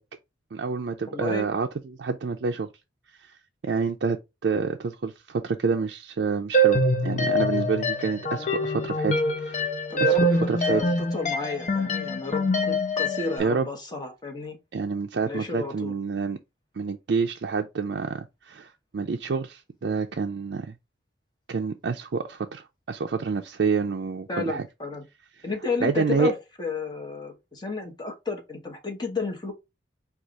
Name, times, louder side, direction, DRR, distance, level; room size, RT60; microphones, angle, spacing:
voice 1, 0.5-2.7 3.2-3.3 3.6-9.7 10.0-10.1 10.5-10.8 13.4-13.7 14.7-16.4 16.7-20.7 21.5-24.6 25.8-26.3, right 5 dB, 60° right, 0.4 m, -28 dB
voice 2, 1.1-1.4 9.9-14.6 15.2-16.0 24.3-25.0 25.4-29.5, left 4 dB, 25° left, 1.2 m, -32 dB
sound 1, 6.5-13.4, equal, 40° left, 0.7 m, -24 dB
4.7 x 2.4 x 3.9 m
head